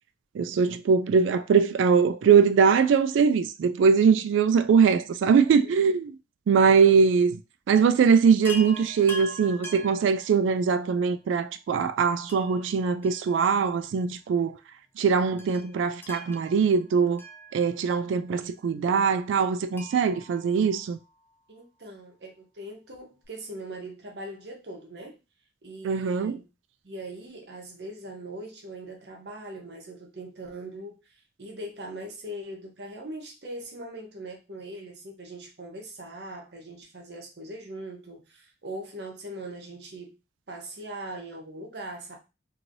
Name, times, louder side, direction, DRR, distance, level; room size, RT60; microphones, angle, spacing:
voice 1, 0.3-6.1 6.5-7.4 7.7-14.6 15.0-17.2 17.5-21.0 25.8-26.4, right 6 dB, 85° right, 0.3 m, -22 dB
Chime, 8.4-10.9 12.3-13.8 14.1-14.2 15.4-18.1 19.7-21.4 22.9-23.0 23.2-23.3, equal, 10° left, 0.3 m, -43 dB
voice 2, 20.3-20.6 21.5-25.2 25.6-26.5 26.8-40.2 40.5-42.2, right 1 dB, 65° right, 0.9 m, -41 dB
3.0 x 2.7 x 2.6 m
head